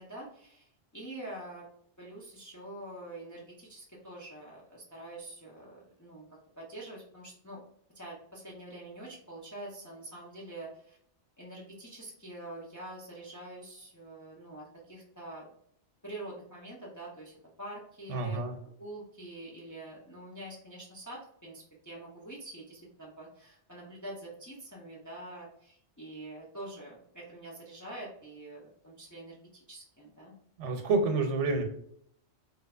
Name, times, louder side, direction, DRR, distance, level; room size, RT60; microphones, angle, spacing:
voice 1, 0.0-1.6 2.0-6.2 6.6-7.6 7.9-11.0 11.4-15.5 16.0-18.4 18.8-30.3, right 1 dB, 25° left, -4 dB, 0.4 m, -45 dB
voice 2, 18.1-18.5 30.6-31.6, right 3 dB, 90° right, 5 dB, 0.9 m, -28 dB
3.2 x 2.8 x 2.4 m, 0.67 s
omnidirectional pair, 1.2 m